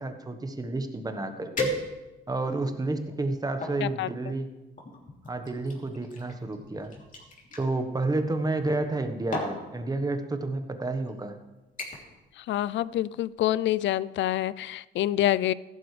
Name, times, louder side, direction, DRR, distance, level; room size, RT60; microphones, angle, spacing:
voice 1, 0.0-1.7 2.3-4.5 5.3-6.9 7.6-11.4, right 2 dB, 20° right, 7 dB, 1.3 m, -30 dB
sound 1, 0.9-1.0 1.6-2.3 2.9-3.8 4.8-7.7 8.8-9.0 9.3-9.6 10.5-10.7 11.1-11.4 11.8-12.2 12.5-12.9 13.2-13.3, left 1 dB, 40° left, 3.2 m, -35 dB
voice 2, 12.4-15.5, left 13 dB, 70° left, 19 dB, 0.4 m, -27 dB
15.5 x 12.0 x 3.3 m, 1.1 s
cardioid pair, 90°, 20 cm